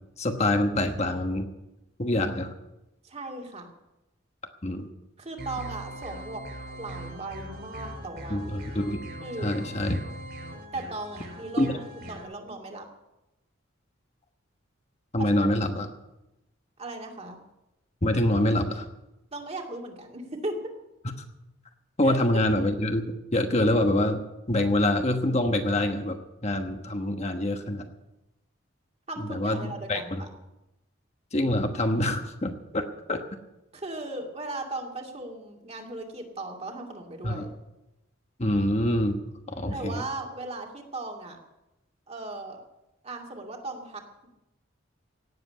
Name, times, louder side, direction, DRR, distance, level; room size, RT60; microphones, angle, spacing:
voice 1, 0.2-1.5 2.0-2.5 4.6-4.9 8.3-9.0 9.4-10.0 11.6-11.7 15.1-15.9 18.0-18.8 22.0-24.2 24.5-27.8 29.3-30.2 31.3-32.8 33.1-33.2 37.2-37.4 38.4-39.2 39.5-40.0, left 1 dB, 35° left, 5 dB, 1.2 m, -25 dB
voice 2, 3.0-3.7 5.2-6.4 6.8-8.5 9.2-9.6 10.7-11.8 12.1-12.8 15.2-15.5 16.8-17.4 19.3-20.6 22.0-22.2 29.1-30.3 33.7-37.5 39.6-41.4 42.1-42.6 43.0-44.3, right 2 dB, 35° right, 2 dB, 2.4 m, -37 dB
sound 1, 5.4-12.2, right 1 dB, 55° right, 5.0 m, -41 dB
17.5 x 7.9 x 9.4 m, 0.95 s
head